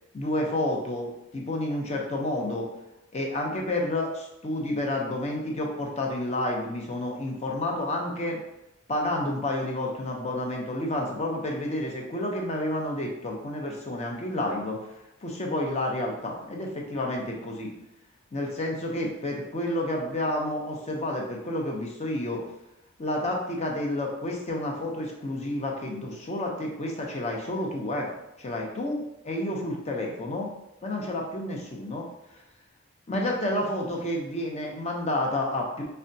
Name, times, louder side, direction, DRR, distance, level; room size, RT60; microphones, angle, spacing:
voice 1, 0.1-2.7 3.1-8.4 8.9-14.8 15.2-17.7 18.3-22.4 23.0-28.1 28.4-30.5 30.8-32.1 33.1-35.9, left 1 dB, 30° left, 0 dB, 0.6 m, -30 dB
4.7 x 2.2 x 2.6 m, 0.90 s
head